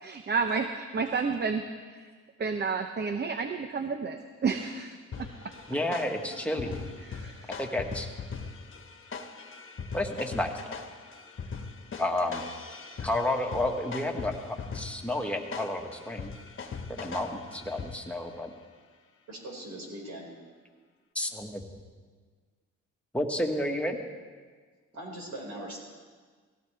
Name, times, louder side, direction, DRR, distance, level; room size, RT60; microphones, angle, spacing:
voice 1, 0.0-1.6 2.4-5.3 7.2-7.5, right 5 dB, 35° right, 7 dB, 0.8 m, -30 dB
sound 1, 5.1-18.3, left 5 dB, 40° left, 1.4 m, -41 dB
voice 2, 5.7-6.8 7.6-8.1 9.9-10.8 12.0-12.4 13.0-16.3 16.9-18.5 21.1-21.6 23.1-24.0, left 1 dB, 5° left, 1 dB, 1.6 m, -31 dB
voice 3, 19.3-20.3 24.9-25.8, right 1 dB, 65° right, -2 dB, 5.1 m, -40 dB
18.0 x 16.5 x 3.4 m, 1.5 s
cardioid pair, 90°, 30 cm